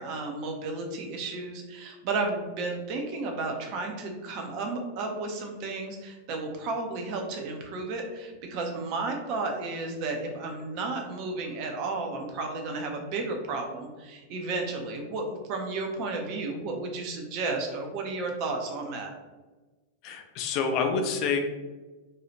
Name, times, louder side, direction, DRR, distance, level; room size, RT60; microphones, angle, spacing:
voice 1, 0.0-19.1, right 3 dB, 45° right, 2 dB, 0.5 m, -33 dB
voice 2, 20.0-21.4, left 5 dB, 40° left, 4 dB, 0.4 m, -27 dB
2.7 x 2.3 x 2.9 m, 1.2 s
figure-of-eight pair, 90°, 0 cm